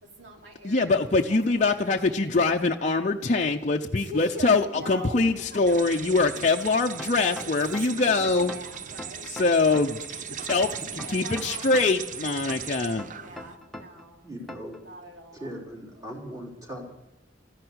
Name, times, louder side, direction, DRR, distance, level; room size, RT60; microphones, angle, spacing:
voice 1, 0.0-2.6 4.0-5.2 6.3-6.6 7.8-8.1 8.4-9.3 10.3-11.6 13.1-14.2 14.7-15.6, equal, 70° right, 1 dB, 3.2 m, -43 dB
voice 2, 0.6-8.5 9.2-13.0, left 3 dB, 40° left, 2 dB, 0.7 m, -24 dB
sound 1, 5.7-13.6, right 8 dB, 45° right, 0.6 m, -38 dB
sound 2, 7.0-8.1 8.5-10.1 10.5-12.1 12.5-14.1 14.5-14.8, left 1 dB, ahead, 1.0 m, -41 dB
voice 3, 14.2-14.8 15.3-16.9, equal, 20° right, -1 dB, 3.6 m, -39 dB
14.0 x 10.5 x 8.0 m, 0.98 s
head